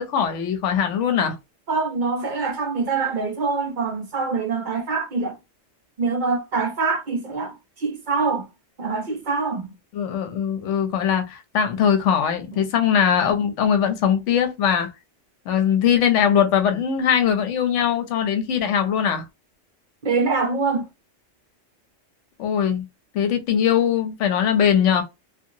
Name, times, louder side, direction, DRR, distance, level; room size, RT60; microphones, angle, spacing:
voice 1, 0.0-1.4 9.9-14.9 15.5-19.2 22.4-22.9 23.1-25.0, left 8 dB, 75° left, 1.0 m, -21 dB
voice 2, 1.7-5.4 6.0-8.5 8.8-9.7 20.0-20.9, right 4 dB, 50° right, 0.6 m, -24 dB
2.8 x 2.4 x 2.6 m
omnidirectional pair, 1.3 m